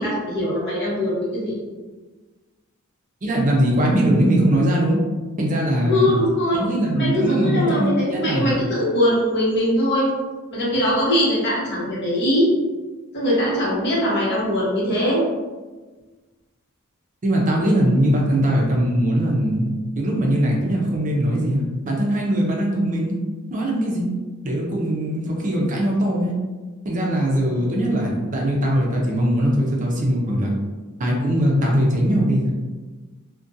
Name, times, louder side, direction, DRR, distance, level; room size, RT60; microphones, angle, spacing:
voice 1, 0.0-1.6 5.9-6.6 6.9-10.1 10.5-12.5 13.1-15.2 27.5-27.6, equal, 50° left, -6 dB, 0.9 m, -21 dB
voice 2, 3.2-5.0 5.4-6.1 6.5-8.6 17.2-23.2 23.5-24.1 24.4-26.3 26.8-30.5 31.0-32.5, right 1 dB, 35° right, -2 dB, 0.5 m, -21 dB
2.4 x 2.2 x 2.6 m, 1.3 s
head